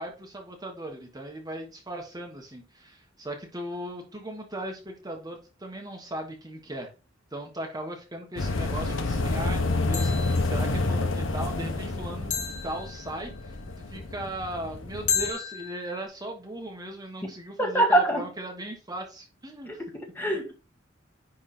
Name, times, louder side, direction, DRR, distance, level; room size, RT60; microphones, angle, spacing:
voice 1, 0.0-6.9 7.3-12.3 12.6-19.8, right 1 dB, 20° right, 1.5 m, -38 dB
sound 1, 8.4-15.3, left 2 dB, 75° left, 1.1 m, -29 dB
sound 2, 8.4-8.7 9.9-10.7 12.3-13.4 15.1-16.0, left 6 dB, 40° left, 1.9 m, -33 dB
voice 2, 17.6-18.2 19.7-20.5, right 1 dB, 10° left, 1.8 m, -24 dB
10.0 x 3.6 x 4.4 m
head